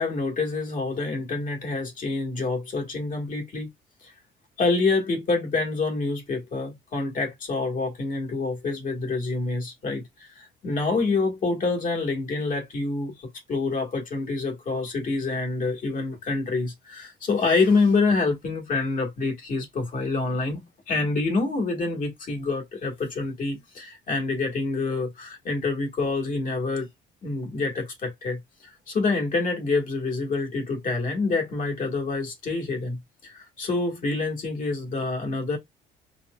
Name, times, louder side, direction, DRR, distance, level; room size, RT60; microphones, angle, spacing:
voice 1, 0.0-3.7 4.0-4.1 4.6-26.9 27.2-35.6, left 3 dB, 50° left, 1.5 m, -27 dB
4.1 x 2.6 x 2.2 m
supercardioid pair, 80°, 18 cm